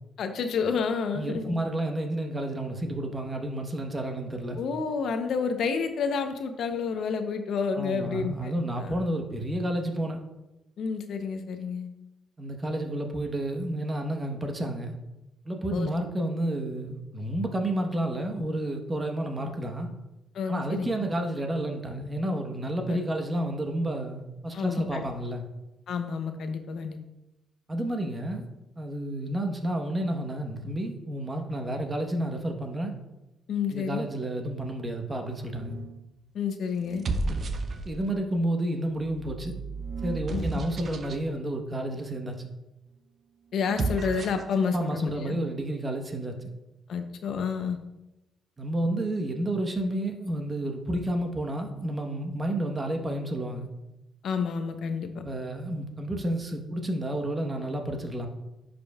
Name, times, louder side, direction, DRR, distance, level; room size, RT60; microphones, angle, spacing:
voice 1, 0.2-1.6 4.6-8.5 8.8-8.9 10.8-11.9 15.7-15.9 20.3-20.9 22.9-23.0 24.5-25.0 25.9-27.0 33.5-34.0 36.3-37.0 40.3-40.6 43.5-45.4 46.9-47.8 54.2-55.2, left 5 dB, 65° left, 7 dB, 0.7 m, -29 dB
voice 2, 1.1-4.6 7.8-10.2 12.4-14.9 15.4-19.9 20.5-25.4 27.7-28.5 28.8-32.9 33.7-35.8 37.8-39.5 40.0-42.5 44.7-46.4 48.6-53.7 55.2-58.3, right 1 dB, 25° right, 4 dB, 1.1 m, -30 dB
sound 1, 35.6-36.0 36.8-38.2 38.9-41.2 43.6-44.5, right 3 dB, 50° right, 0.6 m, -33 dB
10.5 x 5.2 x 2.3 m, 0.97 s
cardioid pair, 90°, 0 cm